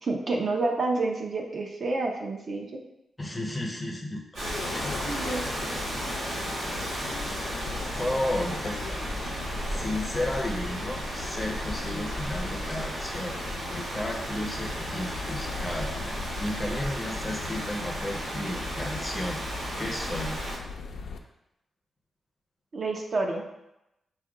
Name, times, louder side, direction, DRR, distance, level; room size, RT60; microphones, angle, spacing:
voice 1, 0.0-2.8 5.0-5.5 22.7-23.5, right 3 dB, 40° right, 2 dB, 0.5 m, -29 dB
voice 2, 3.2-4.5 8.0-9.0 9.7-13.4 13.7-15.9 16.4-19.4 19.8-20.4, left 1 dB, 10° left, 0 dB, 0.5 m, -33 dB
Rain, 4.3-20.6, right 1 dB, 80° right, 1.4 m, -34 dB
sound 1, 4.4-21.2, left 4 dB, 75° left, 0.4 m, -39 dB
4.8 x 2.1 x 4.6 m, 0.88 s
wide cardioid pair, 180°, 0 cm